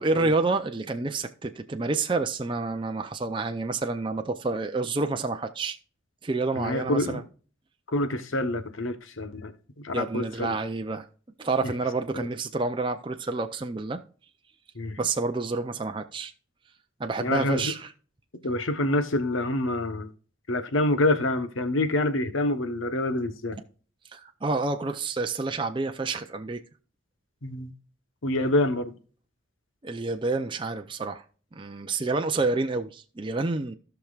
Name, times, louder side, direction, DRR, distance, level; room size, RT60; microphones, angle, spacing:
voice 1, 0.0-5.8 6.2-7.2 9.9-11.1 11.4-14.0 15.0-16.3 17.0-17.9 24.1-26.6 29.8-31.2 31.5-33.8, right 3 dB, 25° right, 0.5 m, -28 dB
voice 2, 6.6-7.2 7.9-9.5 9.8-10.6 12.1-12.3 14.7-15.0 17.2-17.7 18.4-20.1 20.5-23.6 27.4-27.7 28.2-28.9, left 1 dB, 75° left, 1.1 m, -27 dB
16.5 x 5.9 x 2.4 m
head